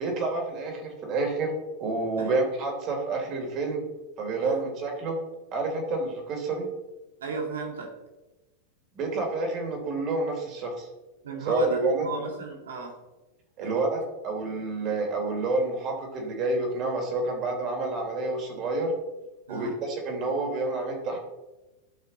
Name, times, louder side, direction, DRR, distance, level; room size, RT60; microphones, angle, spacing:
voice 1, 0.0-3.8 4.2-5.2 5.5-6.7 8.9-10.9 11.5-12.1 13.6-18.9 19.5-21.2, right 3 dB, 45° right, 2 dB, 3.2 m, -29 dB
voice 2, 7.2-7.9 11.2-13.0 13.6-13.8 19.5-19.8, right 4 dB, 85° right, 1 dB, 1.9 m, -35 dB
12.5 x 5.7 x 4.2 m, 1.1 s
hypercardioid pair, 110°, 0 cm